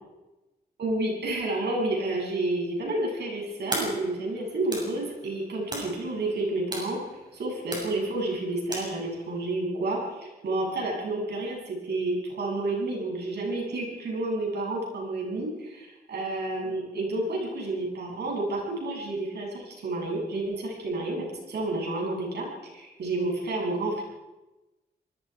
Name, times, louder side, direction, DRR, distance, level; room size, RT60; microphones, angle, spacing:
voice 1, 0.8-7.0 7.3-22.5 22.7-24.0, right 2 dB, 90° right, -1 dB, 7.8 m, -30 dB
sound 1, 3.7-9.5, right 1 dB, 25° right, 6.8 m, -39 dB
26.5 x 20.0 x 4.9 m, 1.1 s
wide cardioid pair, 170°, 17 cm